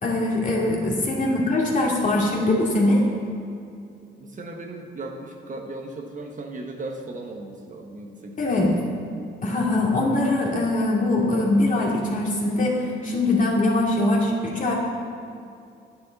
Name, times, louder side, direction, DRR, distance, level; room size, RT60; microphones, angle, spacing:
voice 1, 0.0-3.0 8.4-8.8 9.4-14.7, left 2 dB, 40° left, -3 dB, 2.5 m, -22 dB
voice 2, 0.8-1.7 4.2-8.4, right 2 dB, 40° right, 2 dB, 1.2 m, -37 dB
10.0 x 9.6 x 4.1 m, 2.5 s
cardioid pair, 90°, 20 cm